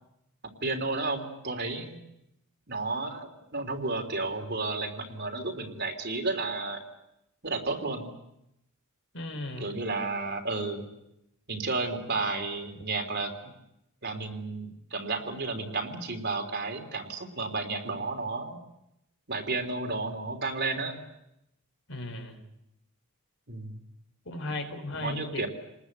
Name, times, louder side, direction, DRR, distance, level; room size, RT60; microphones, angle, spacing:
voice 1, 0.6-2.0 2.7-6.8 7.4-8.1 9.6-10.8 11.5-13.5 14.0-18.6 19.3-21.0 23.5-23.8 25.0-25.5, right 3 dB, 50° right, 4 dB, 3.4 m, -32 dB
voice 2, 9.1-9.8 21.9-22.4 24.3-25.5, left 2 dB, 65° left, 6 dB, 4.3 m, -36 dB
27.5 x 20.5 x 8.1 m, 0.85 s
head